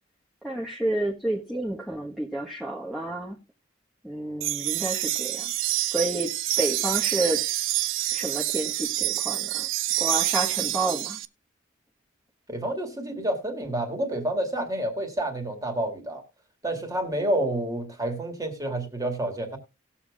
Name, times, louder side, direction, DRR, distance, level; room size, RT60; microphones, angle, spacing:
voice 1, 0.4-3.4 4.0-5.5 5.9-7.4 8.1-9.7 10.0-11.2, right 1 dB, ahead, -5 dB, 1.2 m, -30 dB
sound 1, 4.4-11.3, right 15 dB, 85° right, 0.5 m, -27 dB
voice 2, 12.5-16.2 16.6-19.6, right 1 dB, 20° right, 4 dB, 2.1 m, -29 dB
18.5 x 7.0 x 2.4 m, 0.27 s
head